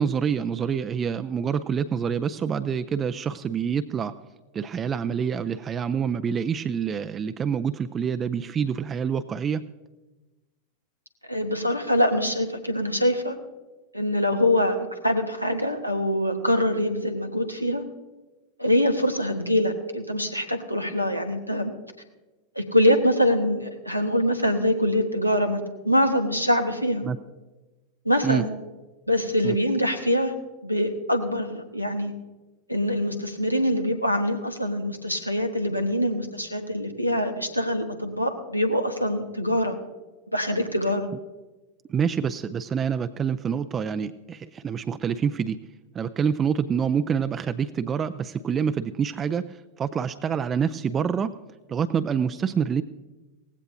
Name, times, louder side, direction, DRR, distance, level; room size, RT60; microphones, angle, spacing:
voice 1, 0.0-4.1 4.5-9.7 27.0-27.2 28.2-28.4 29.4-29.6 41.9-45.6 45.9-51.4 51.7-52.8, right 7 dB, 25° right, 10 dB, 0.4 m, -26 dB
voice 2, 11.3-13.4 13.9-17.8 18.6-21.7 22.5-27.0 28.0-28.5 29.1-30.3 30.6-32.1 32.7-39.8 40.3-41.1, left 1 dB, 90° left, 6 dB, 1.3 m, -24 dB
18.0 x 15.5 x 2.7 m, 1.1 s
figure-of-eight pair, 90°, 0 cm